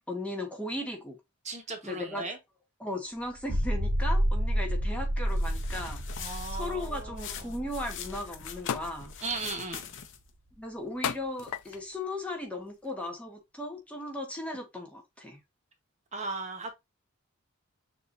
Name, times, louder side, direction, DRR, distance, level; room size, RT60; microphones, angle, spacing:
voice 1, 0.1-1.2 1.8-2.2 2.8-9.1 10.6-15.4, left 1 dB, 5° left, 1.0 m, -37 dB
voice 2, 1.4-2.4 6.2-7.5 9.2-9.9 16.1-16.8, right 3 dB, 35° right, 1.2 m, -37 dB
sound 1, 3.3-9.8, equal, 70° right, 0.8 m, -31 dB
sound 2, 5.3-10.3, left 8 dB, 60° left, 0.8 m, -44 dB
sound 3, 8.7-9.1 9.6-10.0 11.0-11.9 12.7-12.9, left 9 dB, 90° left, 0.4 m, -34 dB
6.5 x 2.8 x 2.6 m
head